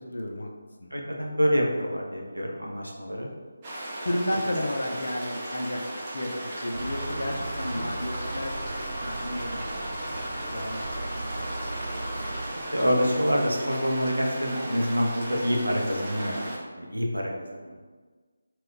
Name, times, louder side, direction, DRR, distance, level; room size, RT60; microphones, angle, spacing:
voice 1, 0.0-0.5 0.8-0.9 4.0-8.5 9.0-9.7 10.0-12.6, left 1 dB, 60° left, 1 dB, 0.4 m, -33 dB
voice 2, 0.9-3.3 7.7-7.9 12.7-17.8, equal, 80° right, -1 dB, 0.6 m, -27 dB
sound 1, 3.6-16.6, right 1 dB, 20° right, 0.5 m, -37 dB
sound 2, 6.7-12.5, right 1 dB, 50° right, 0.9 m, -35 dB
2.3 x 2.1 x 3.7 m, 1.4 s
figure-of-eight pair, 155°, 0 cm